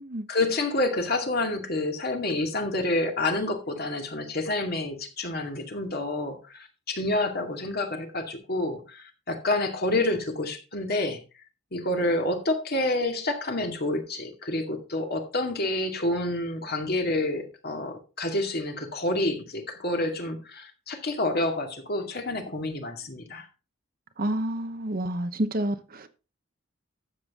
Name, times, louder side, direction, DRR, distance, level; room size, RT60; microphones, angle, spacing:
voice 1, 0.3-11.2 11.7-23.5, left 2 dB, 50° left, 2.2 m, -28 dB
voice 2, 24.2-26.1, right 1 dB, 45° right, 0.9 m, -29 dB
12.5 x 7.8 x 3.7 m
head